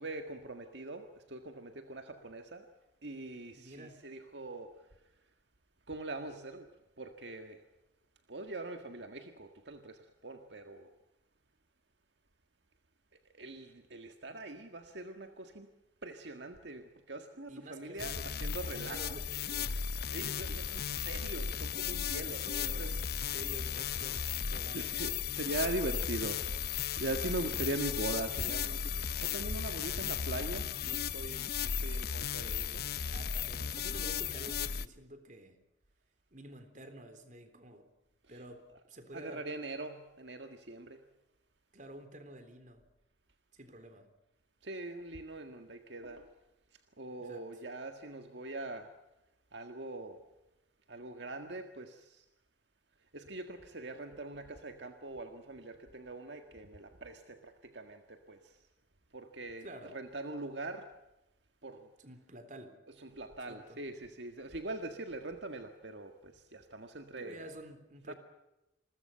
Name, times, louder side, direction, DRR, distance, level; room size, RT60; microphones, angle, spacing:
voice 1, 0.0-2.7 3.0-4.7 5.9-6.7 7.0-7.6 8.3-10.9 13.4-15.7 16.0-19.0 20.1-23.0 24.7-26.5 26.9-32.8 38.3-38.4 39.1-41.0 44.6-46.3 47.0-48.9 49.5-50.2 50.9-52.2 53.1-58.5 59.1-59.6 59.9-60.9 61.6-61.9 63.0-67.5 68.1-68.2, right 2 dB, 70° right, 6 dB, 1.7 m, -42 dB
voice 2, 3.5-4.0 17.5-18.4 18.8-19.8 22.1-24.2 24.5-24.9 27.4-27.6 33.1-35.6 36.3-37.9 38.3-39.5 41.7-42.9 43.5-44.1 47.2-47.5 59.6-60.0 62.0-62.8 63.4-63.8 67.2-68.1, right 1 dB, 40° right, 8 dB, 3.6 m, -50 dB
sound 1, 18.0-34.9, left 7 dB, 55° left, 0.8 m, -35 dB
28.5 x 22.0 x 5.7 m, 0.95 s
head